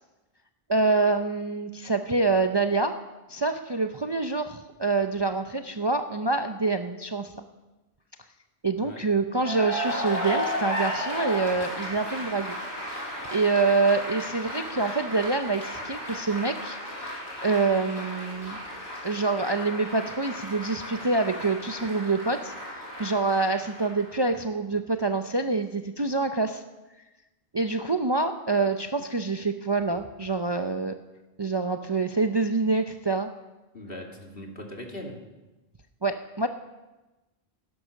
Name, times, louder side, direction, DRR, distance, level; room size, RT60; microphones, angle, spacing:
voice 1, 0.7-2.9 3.3-7.4 8.6-17.1 17.4-18.6 19.0-26.6 27.5-30.9 31.4-33.3 36.0-36.5, right 3 dB, 30° right, 7 dB, 0.6 m, -26 dB
Cheering / Applause, 9.3-24.3, equal, 80° left, 5.8 m, -34 dB
voice 2, 33.7-35.2, left 1 dB, 60° left, 1 dB, 2.6 m, -40 dB
16.0 x 11.0 x 6.5 m, 1.1 s
omnidirectional pair, 1.1 m